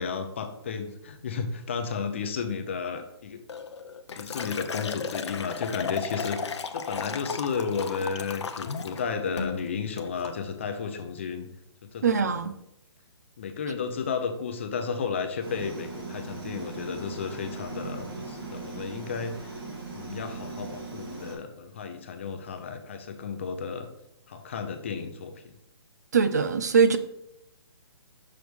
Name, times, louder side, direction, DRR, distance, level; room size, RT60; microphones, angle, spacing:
voice 1, 0.0-3.4 4.2-11.5 11.9-12.4 13.4-19.5 19.9-23.9 24.3-25.3, left 5 dB, 25° left, 6 dB, 0.5 m, -33 dB
Liquid, 3.5-9.0 9.4-9.6 10.0-10.4, left 5 dB, 85° left, 0.7 m, -35 dB
voice 2, 12.0-12.6 26.1-27.0, right 6 dB, 40° right, 11 dB, 0.4 m, -22 dB
sound 1, 15.4-21.3, right 4 dB, 55° right, 2.7 m, -39 dB
6.2 x 6.2 x 3.5 m, 0.82 s
hypercardioid pair, 175°, 14 cm